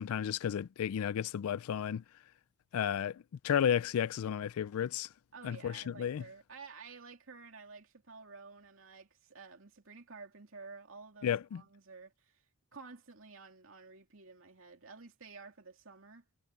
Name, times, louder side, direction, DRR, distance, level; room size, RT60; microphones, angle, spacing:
voice 1, 0.0-2.0 2.7-5.1 5.4-6.2 11.2-11.6, left 9 dB, 80° left, 0.3 m, -33 dB
voice 2, 5.3-12.4 12.7-16.2, right 4 dB, 65° right, 2.9 m, -52 dB
head